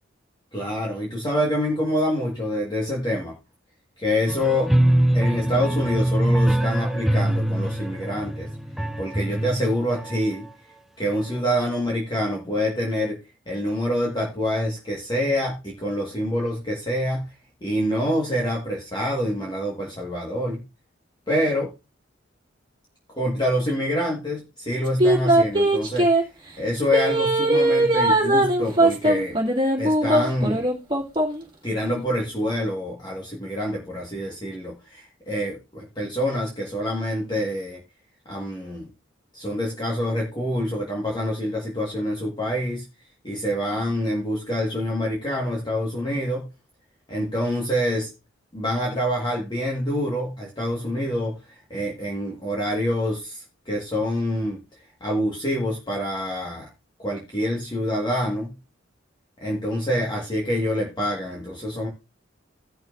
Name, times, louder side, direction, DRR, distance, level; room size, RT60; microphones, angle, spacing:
voice 1, 0.5-3.4 4.0-4.8 5.1-8.5 9.0-10.5 11.0-13.2 13.5-17.3 17.6-20.6 21.3-21.7 23.2-26.1 26.6-29.4 29.8-30.6 31.6-37.8 38.3-38.9 39.3-42.9 43.2-46.5 47.1-48.1 48.5-54.6 55.0-56.7 57.0-58.5 59.4-61.9, equal, 25° left, -2 dB, 1.7 m, -26 dB
sound 1, 4.3-10.2, right 1 dB, ahead, 0.5 m, -23 dB
sound 2, 25.0-26.2 26.9-31.4 31.9-32.0, right 1 dB, 25° right, 2.3 m, -20 dB
16.5 x 6.1 x 2.6 m, 0.27 s
head